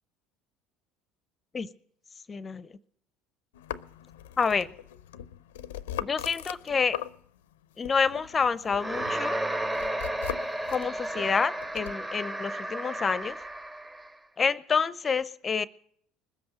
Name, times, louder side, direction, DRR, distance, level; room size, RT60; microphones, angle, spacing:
voice 1, 2.3-2.7 4.4-4.7 6.0-7.0 7.8-9.4 10.7-13.4 14.4-15.6, left 5 dB, 30° left, 18 dB, 0.6 m, -28 dB
sound 1, 3.5-7.5 7.8-11.9, left 11 dB, 75° left, 0.5 m, -40 dB
sound 2, 8.7-14.1, right 1 dB, 20° right, 1.2 m, -33 dB
20.5 x 7.9 x 7.8 m, 0.63 s
hypercardioid pair, 65°, 0 cm